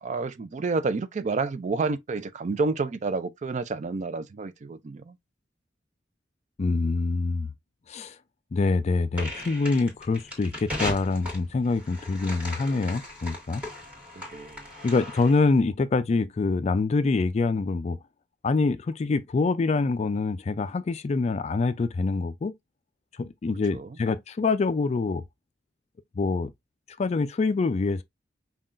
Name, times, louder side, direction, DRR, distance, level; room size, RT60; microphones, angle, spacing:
voice 1, 0.0-5.2 14.3-14.6 23.7-23.9, right 3 dB, 40° right, 0.4 m, -29 dB
voice 2, 6.6-7.5 7.9-8.2 8.5-13.6 14.8-18.0 18.4-22.5 23.2-25.2 26.2-26.5 27.0-28.0, left 3 dB, 35° left, 0.3 m, -25 dB
sound 1, 9.1-15.5, left 1 dB, 10° right, 1.8 m, -37 dB
5.5 x 2.4 x 2.5 m
head